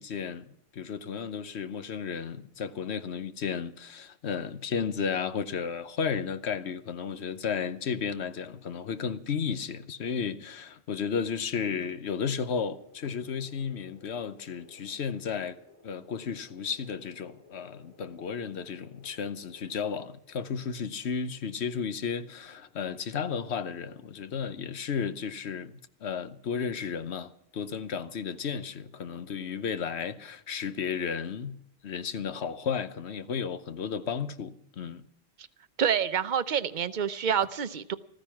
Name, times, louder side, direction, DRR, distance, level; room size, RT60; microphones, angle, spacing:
voice 1, 0.0-15.6 15.8-31.6 31.8-35.0, left 6 dB, 80° left, 1.2 m, -33 dB
sound 1, 12.4-19.7, left 4 dB, 30° left, 4.3 m, -58 dB
voice 2, 35.8-38.0, right 8 dB, 50° right, 0.8 m, -27 dB
15.0 x 14.0 x 5.8 m
omnidirectional pair, 1.1 m